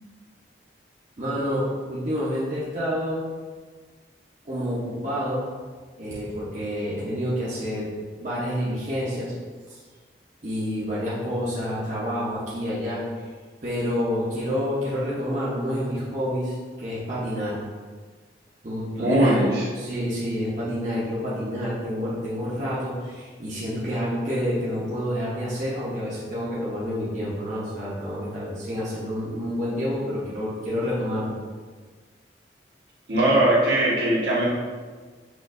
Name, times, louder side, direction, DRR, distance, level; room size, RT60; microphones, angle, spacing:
voice 1, 1.2-3.2 4.4-5.4 6.0-7.9 8.2-9.3 9.7-9.8 10.4-13.0 13.6-17.6 18.6-31.4, equal, 40° right, -9 dB, 0.9 m, -28 dB
voice 2, 19.0-19.7 33.1-34.4, right 1 dB, 70° right, -7 dB, 1.3 m, -20 dB
6.3 x 2.6 x 2.6 m, 1.5 s
head